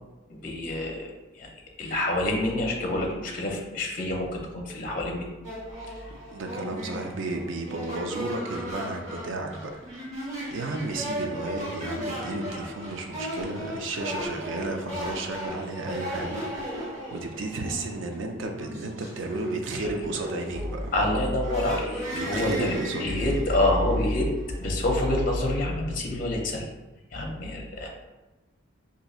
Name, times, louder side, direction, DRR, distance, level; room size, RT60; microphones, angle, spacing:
voice 1, 0.4-1.5 1.8-5.3 19.7-19.9 20.9-24.3 24.6-26.7 27.1-27.9, left 1 dB, 40° left, 0 dB, 0.5 m, -27 dB
sound 1, 5.4-25.1, equal, 85° right, 1.3 m, -36 dB
voice 2, 6.3-10.1 10.5-21.2 22.1-23.1, right 2 dB, 65° right, 4 dB, 0.4 m, -33 dB
4.1 x 2.6 x 2.4 m, 1.1 s
head